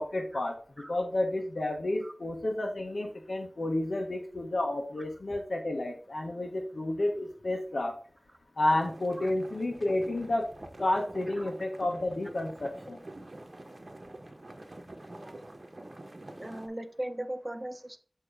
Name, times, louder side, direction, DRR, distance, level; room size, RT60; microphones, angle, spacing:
voice 1, 0.0-8.0 8.6-10.5 10.8-13.0, left 1 dB, 85° left, 1 dB, 1.1 m, -31 dB
sound 1, 8.7-16.7, right 1 dB, 55° right, 0.9 m, -47 dB
voice 2, 16.4-18.0, right 1 dB, 25° right, 8 dB, 0.8 m, -38 dB
6.8 x 3.0 x 5.1 m, 0.40 s
wide cardioid pair, 45°, 0 cm